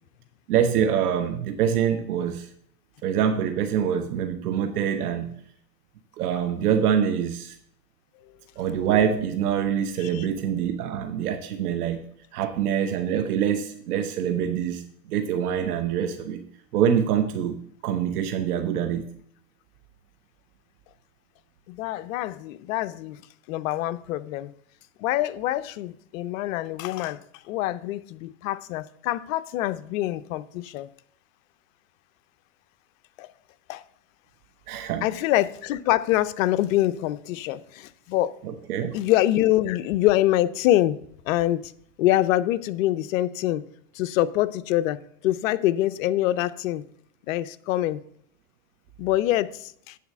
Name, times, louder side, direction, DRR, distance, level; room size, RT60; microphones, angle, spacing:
voice 1, 0.5-2.5 3.0-5.3 6.2-7.6 8.6-12.1 12.3-16.4 16.7-19.1 34.7-35.0 38.4-38.9, right 8 dB, 75° right, 7 dB, 1.0 m, -25 dB
voice 2, 21.7-23.2 23.5-24.5 25.0-30.9 33.2-33.3 33.7-33.8 35.0-38.3 38.9-41.0 41.3-41.7 42.0-43.6 43.9-46.8 47.3-48.0 49.0-50.0, left 14 dB, 60° left, 14 dB, 0.6 m, -25 dB
8.6 x 4.1 x 7.1 m, 0.67 s
hypercardioid pair, 130°, 46 cm